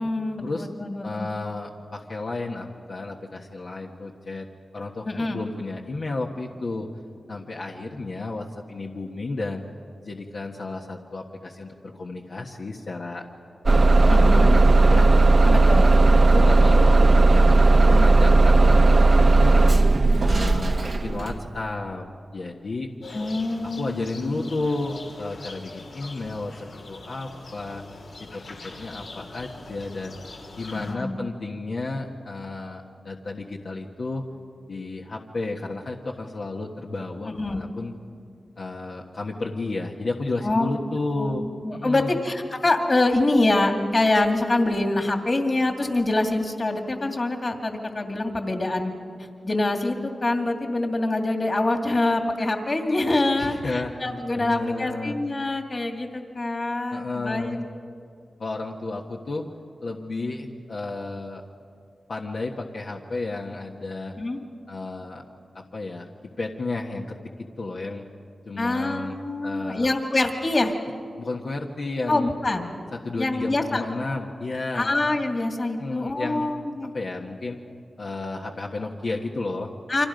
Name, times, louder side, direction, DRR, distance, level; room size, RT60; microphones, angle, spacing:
voice 1, 0.0-1.3 5.1-5.4 14.1-14.5 15.5-16.0 23.1-24.5 30.7-31.2 37.3-37.7 40.4-40.7 41.2-48.9 49.4-57.6 64.2-64.4 68.6-70.7 72.1-72.6 73.2-73.8 74.7-76.9 79.9-80.1, left 2 dB, 40° left, 4 dB, 2.5 m, -25 dB
voice 2, 1.0-6.9 7.3-9.7 10.0-13.2 13.9-15.1 16.3-19.5 20.2-22.1 22.3-22.9 23.6-27.8 28.2-30.1 30.6-34.2 34.7-37.9 38.6-41.4 41.7-42.2 53.4-53.9 54.3-55.1 56.9-57.6 58.4-59.5 59.8-61.4 62.1-64.1 64.7-65.2 65.5-68.1 68.4-69.2 69.4-69.9 71.2-72.3 73.0-74.9 75.8-76.5 76.9-77.6 78.0-79.7, left 3 dB, 65° left, -1 dB, 1.4 m, -32 dB
Bus / Engine starting, 13.7-21.4, right 2 dB, 50° right, 1.0 m, -16 dB
sound 1, 23.0-30.9, left 2 dB, 85° left, 2.9 m, -42 dB
29.0 x 25.0 x 5.2 m, 2.3 s
cardioid pair, 65°, 0 cm